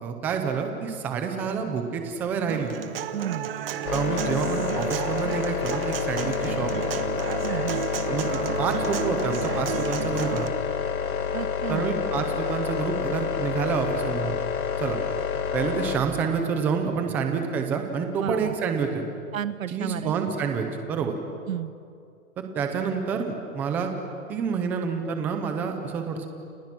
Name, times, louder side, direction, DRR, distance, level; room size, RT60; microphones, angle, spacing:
voice 1, 0.0-2.7 3.9-6.8 8.1-10.5 11.7-14.4 14.8-15.0 15.5-19.0 19.7-21.2 22.6-23.9 24.3-26.3, right 6 dB, 5° right, 5 dB, 0.5 m, -28 dB
Human voice / Acoustic guitar, 2.5-10.5, right 10 dB, 40° right, 1.5 m, -32 dB
voice 2, 3.1-3.5 7.4-7.8 11.3-11.9 18.2-18.5 19.3-20.1 21.5-21.7, right 10 dB, 70° right, 14 dB, 1.3 m, -31 dB
sound 1, 3.9-16.0, left 7 dB, 85° left, 2.8 m, -28 dB
30.0 x 28.5 x 6.1 m, 2.4 s
hypercardioid pair, 160°, 42 cm